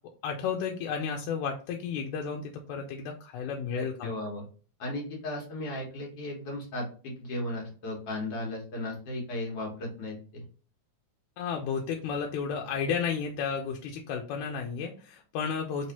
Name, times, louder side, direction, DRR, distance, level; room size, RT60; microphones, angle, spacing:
voice 1, 0.2-4.1 11.4-15.9, left 6 dB, 85° left, 2 dB, 1.9 m, -32 dB
voice 2, 3.8-4.4 4.8-10.4, left 1 dB, 60° left, -1 dB, 2.0 m, -36 dB
4.4 x 3.1 x 2.8 m, 0.39 s
omnidirectional pair, 3.3 m